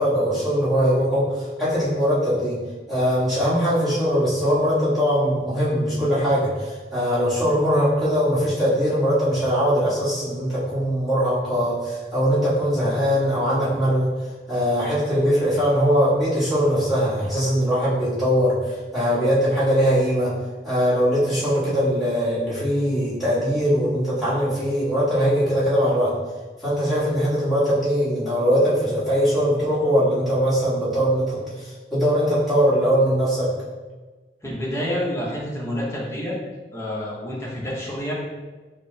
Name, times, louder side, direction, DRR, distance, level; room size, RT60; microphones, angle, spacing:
voice 1, 0.0-2.6 2.9-14.1 14.5-20.3 20.6-26.1 26.6-33.5, equal, ahead, -12 dB, 1.3 m, -21 dB
voice 2, 34.4-36.4 36.7-38.1, equal, 15° left, -5 dB, 0.7 m, -28 dB
5.9 x 2.0 x 2.7 m, 1.3 s
head